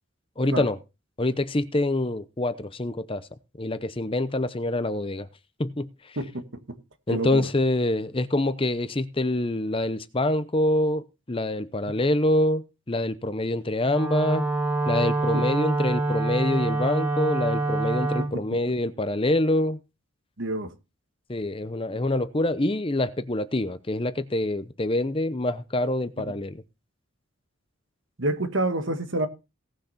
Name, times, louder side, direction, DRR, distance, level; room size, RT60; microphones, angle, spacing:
voice 1, 0.4-0.8 1.2-3.3 3.6-5.3 5.6-6.2 7.1-14.4 14.9-19.8 21.3-26.6, left 1 dB, 25° left, 0.7 m, -26 dB
voice 2, 6.2-6.8 7.1-7.5 15.3-15.5 18.2-18.6 20.4-20.7 28.2-29.3, right 1 dB, 60° right, 1.6 m, -28 dB
Wind instrument woodwind instrument, 13.9-18.4, right 2 dB, 10° right, 1.6 m, -26 dB
17.5 x 6.4 x 4.2 m
head